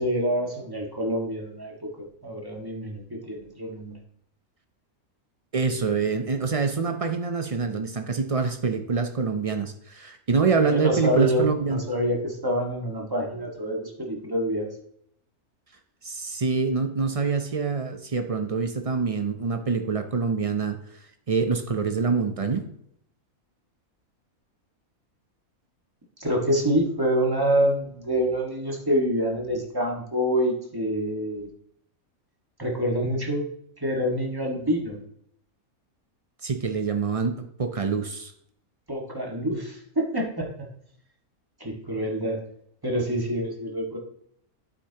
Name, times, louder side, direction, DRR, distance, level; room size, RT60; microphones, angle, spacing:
voice 1, 0.0-3.9 10.6-14.7 26.2-31.5 32.6-33.4 33.8-35.0 38.9-40.7 41.6-42.4 42.8-44.0, equal, 15° right, -1 dB, 1.6 m, -26 dB
voice 2, 5.5-11.8 16.0-20.8 21.3-22.6 36.4-38.3, right 5 dB, 45° right, 6 dB, 0.4 m, -25 dB
8.5 x 8.2 x 2.9 m, 0.70 s
omnidirectional pair, 1.5 m